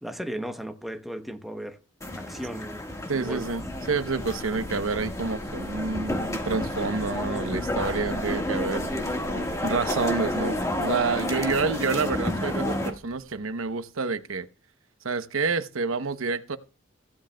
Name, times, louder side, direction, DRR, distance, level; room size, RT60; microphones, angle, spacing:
voice 1, 0.0-1.8 2.2-3.4 7.3-7.9, equal, ahead, 0.8 m, -36 dB
sound 1, 2.0-12.9, left 1 dB, 15° left, 1.5 m, -30 dB
sound 2, 3.1-13.7, equal, 35° left, 1.6 m, -43 dB
voice 2, 3.1-8.9 9.6-14.5 15.0-16.6, right 4 dB, 85° right, 0.8 m, -28 dB
16.0 x 10.0 x 2.2 m
head